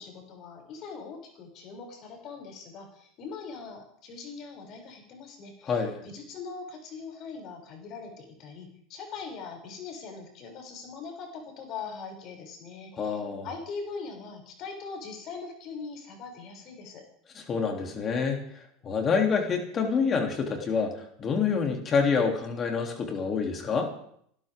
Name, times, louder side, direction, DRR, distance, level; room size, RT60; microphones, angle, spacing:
voice 1, 0.0-17.0, left 5 dB, 45° left, 1 dB, 7.1 m, -41 dB
voice 2, 5.6-6.0 12.9-13.5 17.3-23.9, left 5 dB, 30° left, 2 dB, 3.2 m, -27 dB
29.5 x 12.5 x 3.7 m, 0.68 s
supercardioid pair, 125°, 0 cm